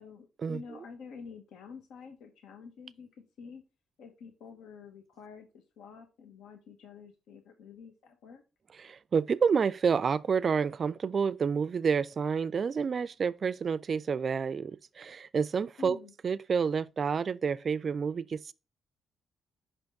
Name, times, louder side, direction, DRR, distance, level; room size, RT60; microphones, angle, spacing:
voice 1, 0.0-3.1 3.4-3.6 4.0-8.4 15.8-16.1, left 5 dB, 85° left, 0.9 m, -48 dB
voice 2, 8.8-16.0 16.2-18.5, right 6 dB, 45° right, 0.3 m, -29 dB
5.6 x 3.5 x 5.2 m
cardioid pair, 90°, 0 cm